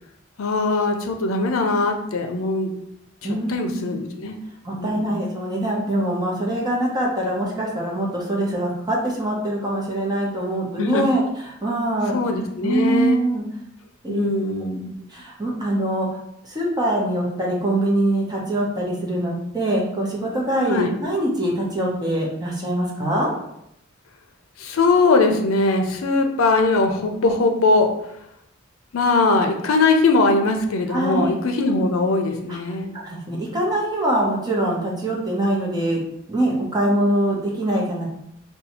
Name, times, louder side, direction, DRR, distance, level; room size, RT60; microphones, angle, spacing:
voice 1, 0.4-2.7 3.5-4.4 4.8-5.2 10.8-11.1 12.1-13.2 14.1-14.9 20.7-20.9 24.6-27.9 28.9-32.9, left 3 dB, 85° left, 4 dB, 0.5 m, -20 dB
voice 2, 3.2-3.9 4.6-12.1 12.6-13.4 14.0-14.3 15.1-16.1 16.4-23.3 30.9-31.3 32.5-32.6 32.9-36.0 36.3-38.0, right 1 dB, 20° right, -3 dB, 0.8 m, -23 dB
2.7 x 2.3 x 4.1 m, 0.78 s
head